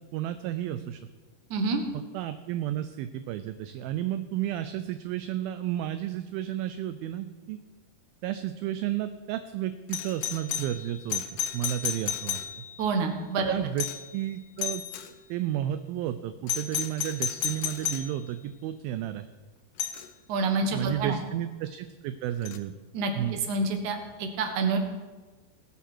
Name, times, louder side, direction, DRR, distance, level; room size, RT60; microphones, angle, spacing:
voice 1, 0.1-1.0 1.9-7.6 8.2-11.2 11.5-12.7 13.5-13.9 14.1-15.0 15.3-19.3 20.7-22.7 23.2-23.4, right 12 dB, 80° right, 11 dB, 2.3 m, -32 dB
voice 2, 1.5-1.8 12.8-13.5 20.3-21.2 22.9-24.8, right 4 dB, 60° right, 5 dB, 2.6 m, -28 dB
Doorbell, 9.9-12.9 13.8-14.2 14.6-15.1 16.5-18.1 19.8-20.1 22.5-22.6, left 10 dB, 90° left, 3.0 m, -32 dB
19.0 x 8.4 x 6.2 m, 1.3 s
omnidirectional pair, 4.6 m